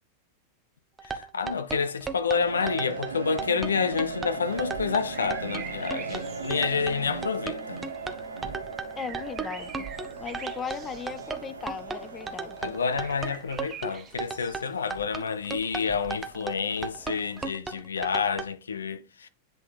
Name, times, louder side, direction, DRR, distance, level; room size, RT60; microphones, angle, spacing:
voice 1, 1.0-7.8 12.6-19.3, left 5 dB, 70° left, 0.5 m, -29 dB
sound 1, 1.0-18.5, right 4 dB, 15° right, 0.7 m, -35 dB
sound 2, 2.3-13.4, right 4 dB, 75° right, 0.8 m, -37 dB
sound 3, 4.4-17.5, right 7 dB, 30° right, 1.1 m, -47 dB
voice 2, 9.0-9.9 10.2-12.7, left 6 dB, 20° left, 0.4 m, -37 dB
8.2 x 3.8 x 3.3 m
figure-of-eight pair, 90°, 0 cm